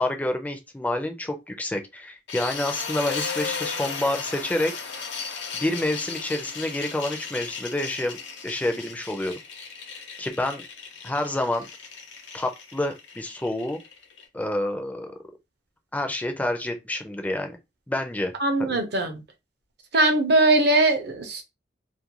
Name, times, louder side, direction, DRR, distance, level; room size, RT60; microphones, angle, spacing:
voice 1, 0.0-4.7 5.5-8.2 8.4-9.3 10.2-10.6 11.0-11.7 12.3-13.8 14.3-15.1 15.9-17.6 17.9-18.3 18.6-18.8 19.9-20.1, left 1 dB, 10° left, 0.4 m, -28 dB
sound 1, 2.3-14.2, left 5 dB, 75° left, 0.7 m, -35 dB
voice 2, 18.4-19.2 19.9-21.4, right 2 dB, 60° right, 0.6 m, -21 dB
2.4 x 2.2 x 2.9 m
head